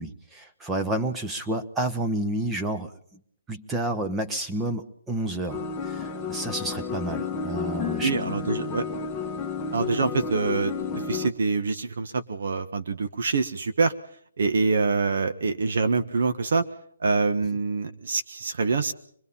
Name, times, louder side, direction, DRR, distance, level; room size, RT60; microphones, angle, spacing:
voice 1, 0.0-2.9 3.5-8.1, right 1 dB, 10° right, 5 dB, 1.1 m, -30 dB
sound 1, 5.5-11.3, left 5 dB, 15° left, 1.2 m, -31 dB
voice 2, 8.0-8.9 9.7-10.7 11.1-13.9 14.4-16.6 17.0-18.9, right 4 dB, 60° right, 9 dB, 1.4 m, -25 dB
25.0 x 21.0 x 5.6 m, 0.63 s
hypercardioid pair, 155°, 0 cm